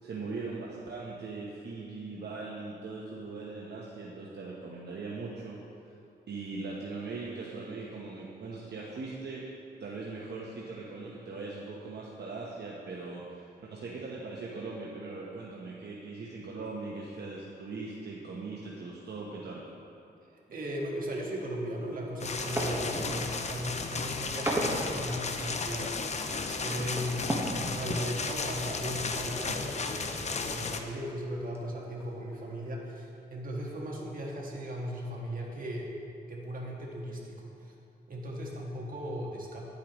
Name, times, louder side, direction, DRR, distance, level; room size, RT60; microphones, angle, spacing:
voice 1, 0.0-5.6 6.3-9.4 9.8-19.6, right 3 dB, 70° right, -4 dB, 0.9 m, -40 dB
voice 2, 20.3-26.2 26.5-35.9 36.3-37.7 38.1-39.7, equal, 50° right, -2 dB, 1.6 m, -37 dB
sound 1, 22.2-30.8, left 4 dB, 40° left, 0.5 m, -34 dB
sound 2, 22.2-23.4 24.1-24.8 25.2-25.3 25.5-27.7 28.0-28.1 28.4-28.6 28.8-28.9 30.5-31.1 31.5-31.7 32.0-32.3, right 1 dB, 15° right, 1.3 m, -35 dB
10.5 x 8.3 x 3.0 m, 2.6 s
wide cardioid pair, 100°, 18 cm